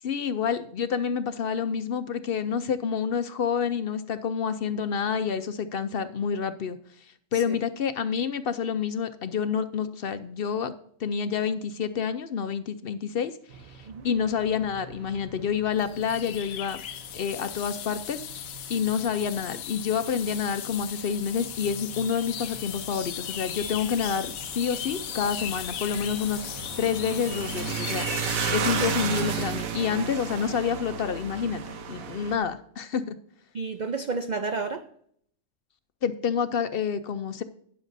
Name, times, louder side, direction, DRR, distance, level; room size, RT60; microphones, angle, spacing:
voice 1, 0.0-6.8 7.3-10.7 11.0-16.8 17.1-18.2 18.7-26.4 26.8-33.2 36.0-37.4, left 7 dB, 60° left, 11 dB, 0.7 m, -28 dB
sound 1, 13.5-32.4, right 6 dB, 85° right, 1.3 m, -35 dB
sound 2, 15.8-29.6, left 10 dB, 90° left, 1.1 m, -38 dB
voice 2, 28.5-28.9 33.5-34.8, right 4 dB, 55° right, 7 dB, 0.5 m, -31 dB
12.5 x 9.9 x 2.6 m, 0.64 s
omnidirectional pair, 1.4 m